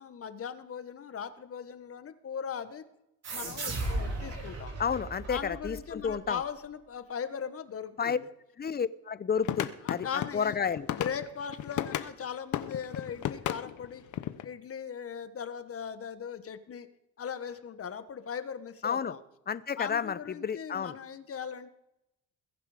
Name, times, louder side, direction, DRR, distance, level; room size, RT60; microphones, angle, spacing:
voice 1, 0.0-2.8 3.3-4.7 5.3-8.3 9.8-10.6 10.9-14.0 14.4-16.9 17.2-19.2 19.8-21.7, left 7 dB, 50° left, 11 dB, 1.4 m, -39 dB
sound 1, 3.2-6.4, right 2 dB, 55° right, 4.7 m, -36 dB
voice 2, 4.8-6.4 8.0-8.2 8.6-10.1 10.3-10.9 18.8-19.1 19.5-21.0, left 6 dB, 30° left, 16 dB, 0.8 m, -31 dB
sound 2, 9.4-12.1 12.5-14.4, left 12 dB, 75° left, 1.0 m, -34 dB
22.0 x 9.9 x 5.1 m, 0.85 s
cardioid pair, 90°, 30 cm